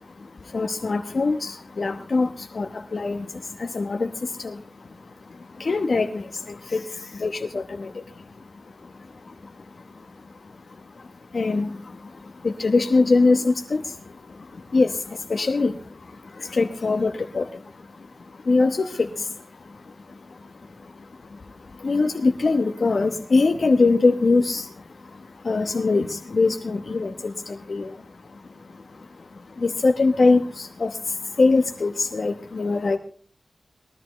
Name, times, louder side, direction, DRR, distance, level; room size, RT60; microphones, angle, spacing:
voice 1, 0.0-33.0, left 3 dB, 65° left, 5 dB, 1.0 m, -24 dB
19.5 x 13.5 x 3.2 m, 0.44 s
wide cardioid pair, 60°, 0 cm